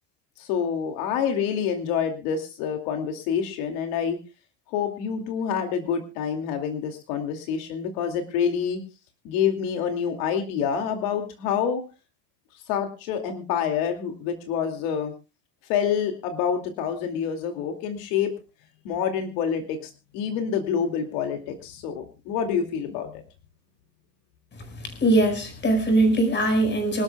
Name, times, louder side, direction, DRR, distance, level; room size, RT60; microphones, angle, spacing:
voice 1, 0.4-4.2 4.7-8.8 9.2-11.8 12.7-15.1 15.6-18.3 18.8-23.2, left 7 dB, 70° left, 5 dB, 2.6 m, -27 dB
voice 2, 24.8-27.0, right 1 dB, 20° left, 6 dB, 5.1 m, -21 dB
26.0 x 13.0 x 2.3 m, 0.31 s
cardioid pair, 170°, 48 cm